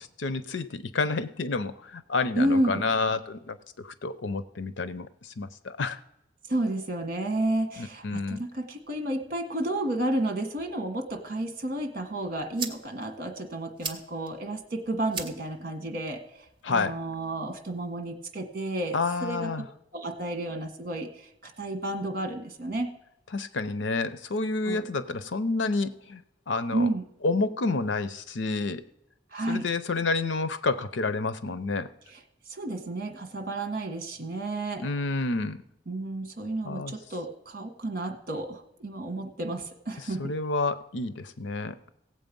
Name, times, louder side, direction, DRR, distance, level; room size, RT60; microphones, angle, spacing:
voice 1, 0.0-6.0 7.8-8.4 16.6-17.0 18.9-19.7 23.3-26.2 26.5-26.9 27.2-28.8 29.5-31.9 34.8-35.6 36.6-36.9 40.2-41.8, left 3 dB, 85° left, 13 dB, 0.7 m, -29 dB
voice 2, 2.4-2.9 6.5-16.2 16.7-19.5 19.9-22.9 24.6-24.8 26.7-27.0 29.3-29.7 32.1-32.2 32.5-34.8 35.9-40.2, right 1 dB, 55° right, 5 dB, 1.6 m, -31 dB
sound 1, 11.9-17.9, right 5 dB, 30° right, 1.0 m, -43 dB
16.5 x 7.7 x 5.3 m, 0.84 s
head